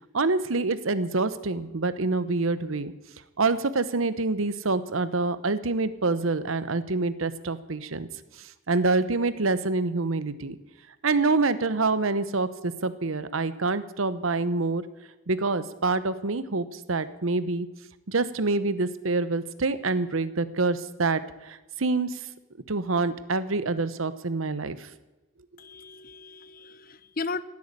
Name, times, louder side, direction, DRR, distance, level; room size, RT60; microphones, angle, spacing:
voice 1, 0.1-2.9 3.4-8.1 8.4-10.6 11.0-14.8 15.3-17.7 18.1-22.2 22.7-24.9, right 3 dB, 80° right, 14 dB, 1.0 m, -26 dB
voice 2, 25.6-27.4, left 4 dB, 45° left, 16 dB, 0.7 m, -36 dB
16.0 x 9.6 x 8.3 m, 1.1 s
head